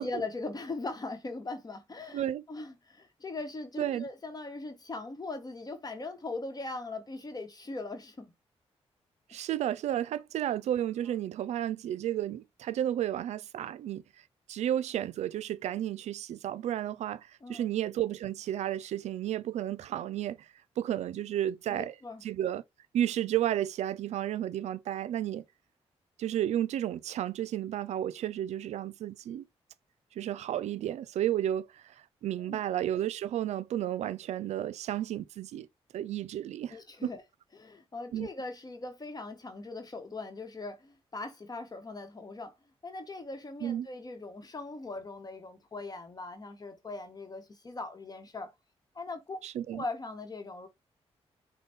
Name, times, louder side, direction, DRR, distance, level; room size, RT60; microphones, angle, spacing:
voice 1, 0.0-8.3 17.4-17.7 21.7-22.2 32.4-32.6 36.7-37.2 37.5-42.6 42.8-48.5 48.9-49.4 49.7-50.7, left 3 dB, 35° left, 1.0 m, -40 dB
voice 2, 3.8-4.1 9.3-14.0 14.5-20.4 20.8-21.9 22.2-22.6 22.9-25.4 26.2-29.4 30.2-31.9 32.2-35.7 35.9-36.8 37.0-37.1 38.1-38.3 43.6-43.9 49.4-49.8, right 11 dB, 80° right, 0.4 m, -32 dB
5.3 x 2.2 x 3.9 m
cardioid pair, 70°, 11 cm